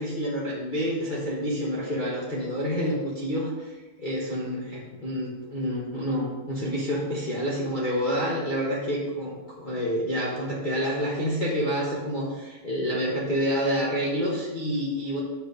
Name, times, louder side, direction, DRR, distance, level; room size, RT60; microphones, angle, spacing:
voice 1, 0.0-3.7 4.0-15.2, equal, 30° left, -6 dB, 1.1 m, -28 dB
6.2 x 4.6 x 6.6 m, 1.1 s
omnidirectional pair, 2.4 m